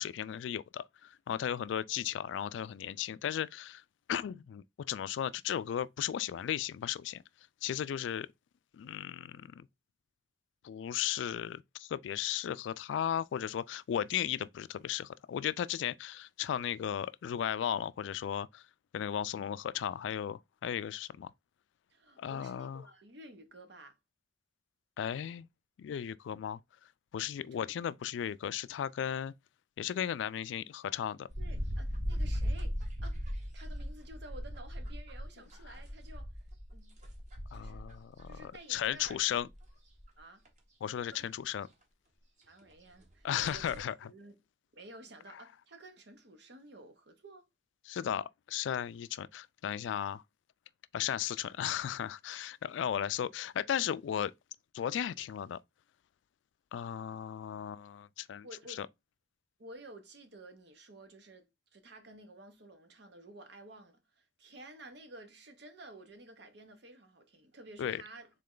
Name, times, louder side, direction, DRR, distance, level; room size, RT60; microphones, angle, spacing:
voice 1, 0.0-3.8 4.1-7.2 7.6-8.3 8.7-9.7 10.6-18.6 18.9-21.3 22.2-22.8 25.0-25.5 25.8-26.6 27.1-29.3 29.8-31.3 37.5-39.5 40.8-41.7 43.2-43.9 47.9-50.2 50.9-54.3 54.7-55.6 56.7-58.5 58.8-58.9 67.8-68.0, left 9 dB, 80° left, 0.3 m, -35 dB
voice 2, 21.9-24.0 27.5-27.6 31.4-36.4 36.7-36.9 37.5-37.8 38.2-39.4 40.2-40.4 41.1-41.3 42.5-44.4 44.7-47.5 58.4-58.8 59.6-68.3, right 1 dB, 65° right, 1.0 m, -52 dB
sound 1, 31.3-38.4 38.8-39.7 40.0-40.1 40.5-40.6 42.6-42.7 43.0-43.1 43.3-43.8, equal, 40° right, 1.0 m, -38 dB
3.8 x 3.2 x 3.7 m
head